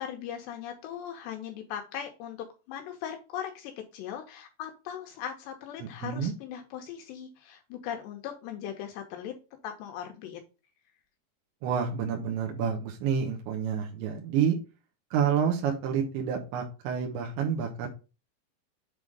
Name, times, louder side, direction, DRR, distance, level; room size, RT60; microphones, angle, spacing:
voice 1, 0.0-9.4 9.6-10.4, left 9 dB, 80° left, 4 dB, 3.0 m, -39 dB
voice 2, 5.8-6.3 11.6-14.6 15.1-17.9, right 7 dB, 80° right, 1 dB, 3.4 m, -29 dB
8.1 x 3.8 x 4.9 m, 0.31 s
omnidirectional pair, 5.2 m